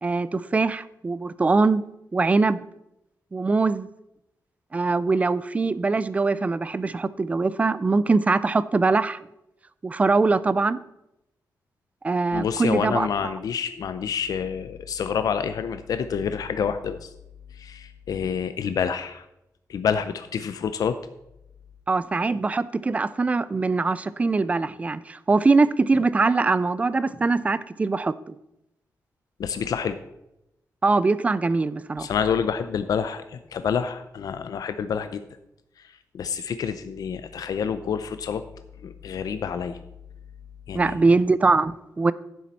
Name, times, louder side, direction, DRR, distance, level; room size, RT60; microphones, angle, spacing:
voice 1, 0.0-1.8 2.1-2.6 3.3-3.9 4.7-9.2 9.8-10.8 12.0-13.3 21.9-28.3 30.8-32.1 40.7-42.1, right 3 dB, 20° right, 17 dB, 0.3 m, -22 dB
voice 2, 12.3-17.1 17.5-19.3 19.7-21.0 29.4-30.0 32.0-35.2 35.8-38.4 38.8-39.8 40.7-40.9, left 7 dB, 70° left, 10 dB, 0.5 m, -28 dB
10.0 x 7.4 x 4.1 m, 0.85 s
wide cardioid pair, 180°, 7 cm